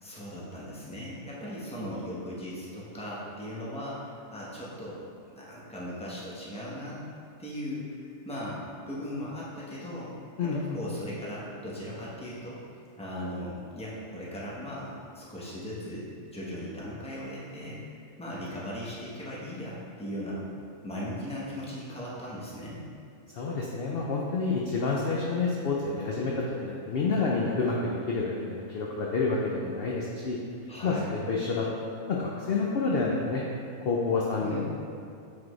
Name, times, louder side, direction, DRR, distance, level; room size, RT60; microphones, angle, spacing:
voice 1, 0.0-7.0 7.4-10.1 10.4-12.6 13.0-16.0 16.3-20.4 20.8-22.8 30.7-31.2 34.4-34.6, equal, 5° left, -6 dB, 0.8 m, -38 dB
voice 2, 10.4-10.8 23.3-30.4 30.8-31.7 32.1-33.4 33.8-34.6, left 4 dB, 60° left, -3 dB, 0.6 m, -28 dB
7.4 x 4.2 x 3.1 m, 2.5 s
omnidirectional pair, 1.5 m